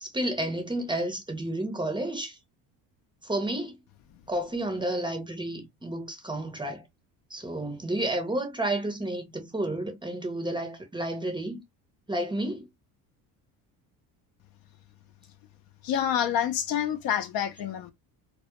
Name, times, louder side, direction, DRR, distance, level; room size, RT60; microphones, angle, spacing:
voice 1, 0.0-2.4 3.2-3.8 4.3-6.8 7.3-11.6 12.1-12.7, right 1 dB, 10° right, 0.6 m, -31 dB
voice 2, 15.8-17.9, left 9 dB, 55° left, 0.6 m, -27 dB
2.2 x 2.1 x 2.8 m
supercardioid pair, 95°, 43 cm